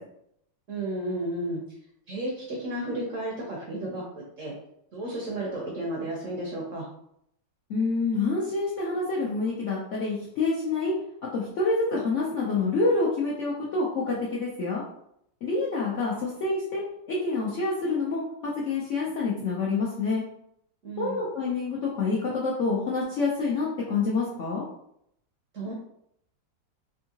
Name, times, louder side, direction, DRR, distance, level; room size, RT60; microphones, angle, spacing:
voice 1, 0.7-1.6 2.1-4.0 4.4-4.5 4.9-6.9 20.8-21.2 25.5-25.7, right 1 dB, 60° right, -3 dB, 0.8 m, -32 dB
voice 2, 7.7-10.9 11.3-14.8 15.4-20.2 21.0-24.6, left 3 dB, 60° left, -6 dB, 0.8 m, -27 dB
3.6 x 2.7 x 2.8 m, 0.73 s
omnidirectional pair, 2.0 m